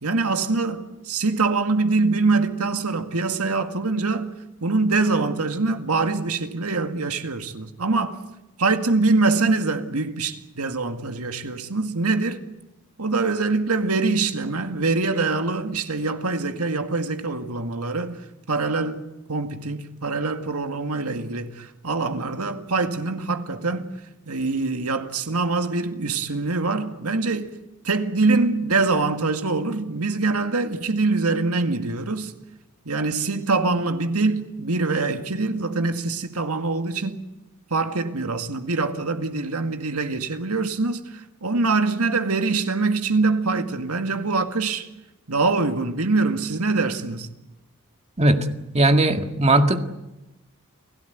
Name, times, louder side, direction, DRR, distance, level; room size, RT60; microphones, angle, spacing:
voice 1, 0.0-4.3 4.6-8.2 8.6-12.4 13.0-18.2 18.5-19.0 19.3-23.9 24.3-27.6 27.8-32.3 32.9-37.2 37.7-44.9 45.3-47.3, right 3 dB, 85° right, 2.1 m, -24 dB
voice 2, 48.7-49.8, right 2 dB, 30° right, 1.9 m, -18 dB
30.0 x 17.0 x 9.4 m
head